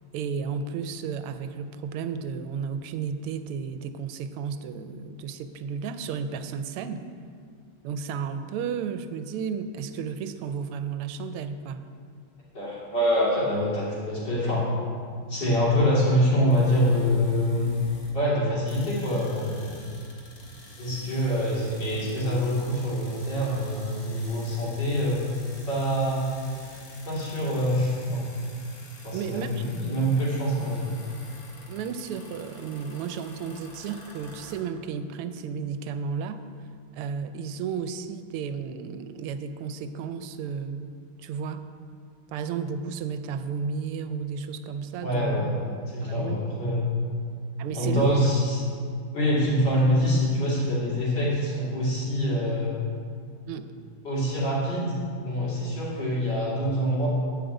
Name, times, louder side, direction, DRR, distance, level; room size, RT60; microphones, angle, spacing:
voice 1, 0.1-7.0 7.8-11.8 29.1-29.6 31.7-36.4 36.9-41.6 42.3-45.4 46.0-46.6 47.6-48.3 53.5-53.7, right 6 dB, 85° right, 10 dB, 1.5 m, -33 dB
voice 2, 12.5-14.7 15.3-17.8 18.1-19.7 20.8-25.3 25.7-26.3 27.0-28.3 29.0-30.9 45.0-45.6 45.9-46.8 47.7-48.6 49.1-52.7 54.0-57.1, equal, 50° left, -7 dB, 3.3 m, -25 dB
sound 1, 16.5-18.2 18.5-34.6, left 1 dB, 85° left, 2.8 m, -48 dB
10.0 x 5.3 x 8.0 m, 2.2 s
omnidirectional pair, 2.4 m